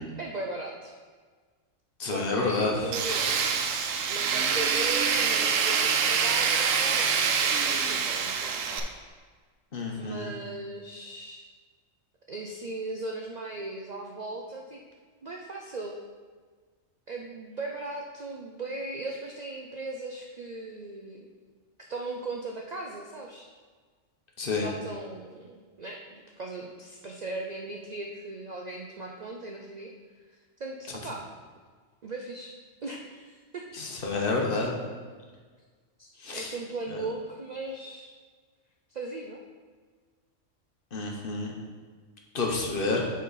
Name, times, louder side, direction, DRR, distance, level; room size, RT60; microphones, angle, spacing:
voice 1, 0.2-0.9 2.1-3.4 4.1-8.9 10.0-11.5 12.3-14.8 15.2-15.9 17.1-21.3 21.8-23.5 24.5-29.9 30.6-31.3 32.0-32.5 32.8-33.7 36.0-38.1 38.9-39.4, right 2 dB, 55° right, 1 dB, 0.5 m, -38 dB
voice 2, 2.0-2.9 9.7-10.3 24.4-24.7 33.7-34.8 36.2-36.5 36.9-37.0 40.9-41.5 42.3-43.1, left 3 dB, 50° left, 0 dB, 1.0 m, -29 dB
Tools, 2.9-8.8, right 6 dB, 90° right, 1.0 m, -25 dB
8.1 x 4.3 x 4.0 m, 1.5 s
omnidirectional pair, 1.3 m